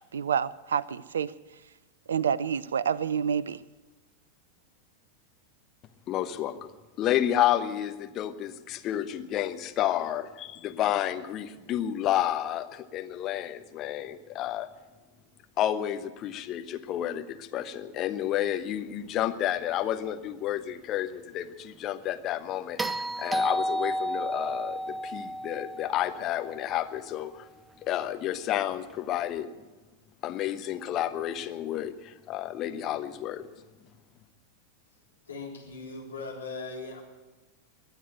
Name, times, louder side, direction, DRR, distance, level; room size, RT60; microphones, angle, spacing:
voice 1, 0.0-1.3 2.1-3.6, right 7 dB, 65° right, 21 dB, 0.4 m, -28 dB
voice 2, 6.1-6.7 7.0-14.7 15.6-27.5 27.8-29.5 30.2-33.5, left 12 dB, 35° left, 8 dB, 1.0 m, -30 dB
sound 1, 22.8-27.1 29.3-29.4, equal, 10° right, 0.6 m, -32 dB
voice 3, 35.3-37.0, left 3 dB, 75° left, -2 dB, 3.8 m, -39 dB
22.5 x 8.1 x 7.8 m, 1.2 s
figure-of-eight pair, 90°, 0 cm